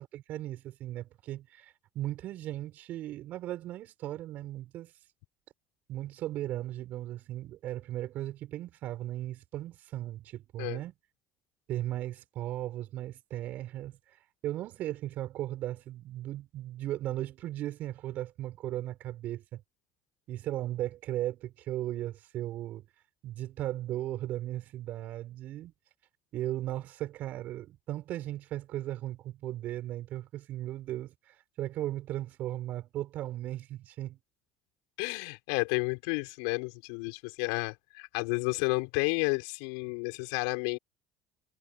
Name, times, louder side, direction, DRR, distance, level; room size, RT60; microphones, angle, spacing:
voice 1, 0.0-4.9 5.9-10.9 11.7-19.6 20.3-22.9 23.2-25.7 26.3-34.2, right 14 dB, 60° right, 6.6 m, -37 dB
voice 2, 35.0-40.8, left 35 dB, 75° left, 5.8 m, -31 dB
hypercardioid pair, 65°, 3 cm